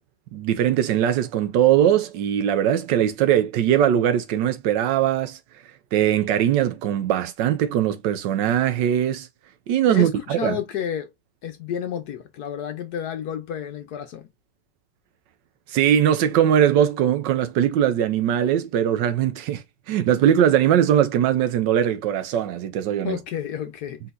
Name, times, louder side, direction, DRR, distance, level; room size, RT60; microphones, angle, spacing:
voice 1, 0.3-5.4 5.9-9.3 9.7-10.6 15.7-23.2, right 10 dB, 75° right, 1.2 m, -20 dB
voice 2, 9.9-11.1 11.4-14.3 23.0-24.0, left 9 dB, 65° left, 1.0 m, -31 dB
4.1 x 4.0 x 2.5 m
omnidirectional pair, 2.1 m